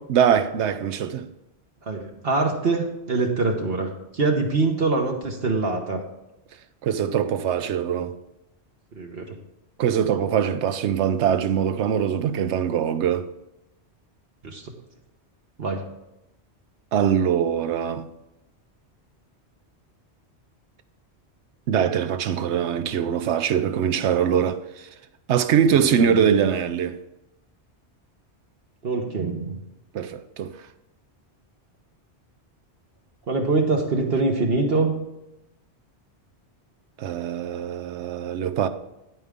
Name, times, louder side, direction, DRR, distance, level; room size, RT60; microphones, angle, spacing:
voice 1, 0.1-1.3 6.8-8.1 9.8-13.3 16.9-18.1 21.7-24.9 25.3-27.0 29.9-30.5 37.0-38.7, right 8 dB, 85° right, 0.9 m, -22 dB
voice 2, 1.8-6.0 8.9-9.4 14.4-14.7 15.6-15.9 26.0-26.4 28.8-29.6 33.3-35.1, right 3 dB, 60° right, 1.2 m, -24 dB
9.4 x 9.0 x 3.6 m
omnidirectional pair, 1.1 m